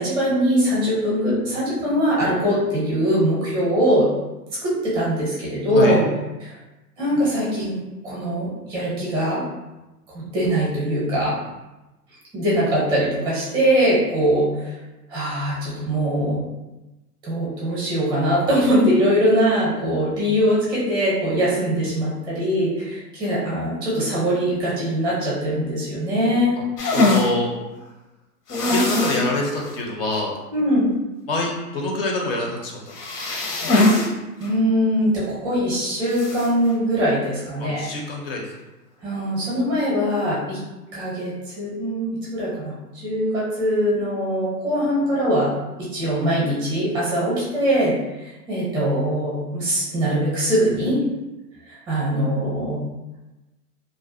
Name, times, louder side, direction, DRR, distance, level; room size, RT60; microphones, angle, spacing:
voice 1, 0.0-4.1 4.6-6.0 6.4-6.5 7.0-7.7 8.0-9.4 10.1-11.3 12.3-14.8 15.1-16.4 17.2-26.6 30.5-30.9 34.4-37.8 39.0-40.6 40.9-42.7 43.0-45.5 45.8-51.0 51.7-52.8, equal, 10° right, -7 dB, 0.5 m, -22 dB
sound 1, 26.8-27.3 28.5-29.3 29.6-29.7 30.1-30.2 32.9-34.1 34.4-34.5 36.1-36.5, left 2 dB, 75° left, 0.8 m, -20 dB
voice 2, 26.9-27.5 28.7-30.4 31.3-33.0 37.6-38.5, left 2 dB, 40° left, -1 dB, 0.5 m, -25 dB
2.4 x 2.1 x 2.5 m, 1.0 s
hypercardioid pair, 135°, 47 cm